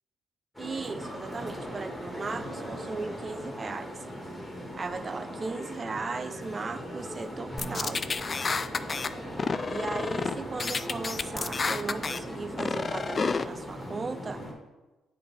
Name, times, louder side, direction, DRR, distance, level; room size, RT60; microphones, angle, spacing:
sound 1, 0.5-14.5, equal, 5° left, 1.8 m, -39 dB
voice 1, 0.6-3.9 4.8-8.0 9.7-14.5, right 4 dB, 35° right, 12 dB, 0.5 m, -37 dB
sound 2, 7.6-9.1 9.4-10.3 10.6-12.2 12.6-13.4, left 4 dB, 35° left, 0.3 m, -30 dB
8.5 x 4.1 x 4.2 m, 1.1 s
cardioid pair, 90°, 0 cm